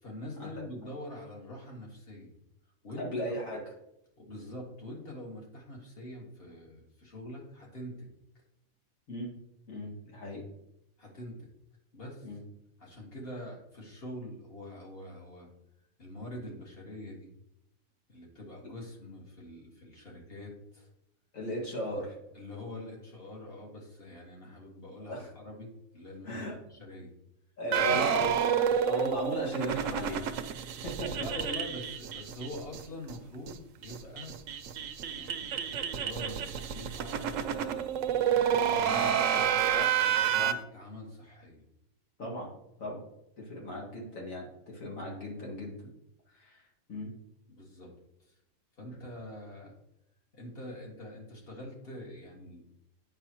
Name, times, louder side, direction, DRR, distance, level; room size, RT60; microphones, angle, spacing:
voice 1, 0.0-2.3 2.8-3.5 4.2-8.1 11.0-11.5 11.9-12.3 12.8-15.5 16.0-17.3 18.1-20.9 22.3-26.4 26.7-27.1 27.7-28.3 31.1-34.3 35.0-35.4 35.7-41.6 47.5-47.9 48.2-48.4 48.7-49.7 50.3-52.6, left 1 dB, 45° left, -1 dB, 1.9 m, -44 dB
voice 2, 3.0-3.6 9.1-9.3 9.7-10.4 12.2-12.4 21.3-22.1 25.1-25.3 26.2-26.6 27.6-30.3 31.0-31.1 39.7-39.9 40.4-40.5 42.2-42.5 42.8-43.0 43.4-45.9 46.3-46.6 46.9-47.1, equal, 80° left, -3 dB, 2.3 m, -36 dB
sound 1, 27.7-32.8 33.1-33.2 33.5-33.6 33.8-40.5, right 9 dB, 75° right, 1.0 m, -29 dB
8.7 x 5.8 x 2.9 m, 0.82 s
omnidirectional pair, 1.4 m